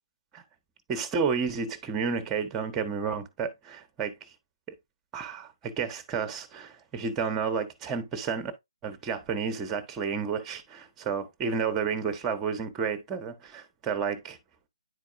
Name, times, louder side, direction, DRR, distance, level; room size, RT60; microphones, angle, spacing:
voice 1, 0.9-4.3 5.1-8.5 8.8-14.4, right 6 dB, 15° right, 0.9 m, -31 dB
9.7 x 4.5 x 2.5 m
figure-of-eight pair, 140°, 3 cm